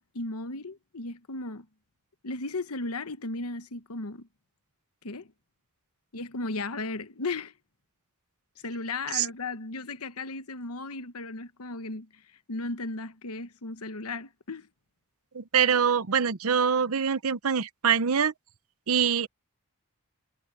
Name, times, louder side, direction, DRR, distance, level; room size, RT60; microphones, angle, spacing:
voice 1, 0.0-1.7 2.2-4.3 5.0-5.3 6.1-7.5 8.6-12.1 12.5-14.7, left 3 dB, 85° left, 1.2 m, -35 dB
voice 2, 15.3-18.3 18.9-19.3, right 7 dB, 75° right, 0.8 m, -24 dB
head